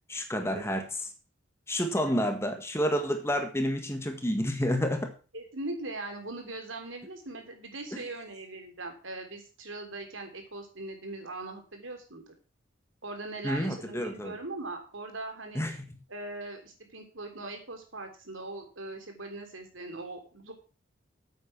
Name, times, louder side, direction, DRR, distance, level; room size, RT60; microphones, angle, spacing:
voice 1, 0.1-0.9 1.7-5.1 7.9-8.0 13.4-14.4 15.5-15.8, equal, 15° left, 5 dB, 1.7 m, -29 dB
voice 2, 5.3-12.2 13.0-15.6 16.1-20.5, right 2 dB, 85° right, 4 dB, 3.4 m, -40 dB
9.3 x 8.4 x 6.1 m, 0.35 s
head